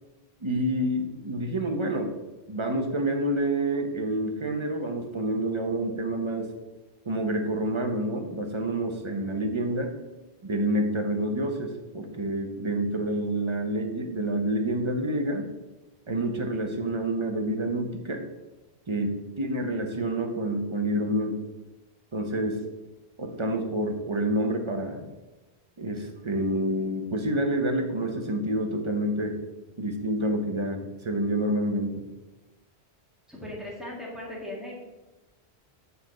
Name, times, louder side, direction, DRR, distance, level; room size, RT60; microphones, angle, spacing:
voice 1, 0.4-2.1 2.5-6.5 7.0-9.9 10.4-15.5 16.1-18.2 18.9-21.4 22.1-22.6 23.2-25.1 25.8-29.4 29.8-31.9, right 1 dB, 30° right, 4 dB, 0.8 m, -28 dB
voice 2, 33.3-34.8, left 1 dB, ahead, -5 dB, 1.8 m, -38 dB
6.9 x 4.0 x 5.0 m, 1.1 s
omnidirectional pair, 1.1 m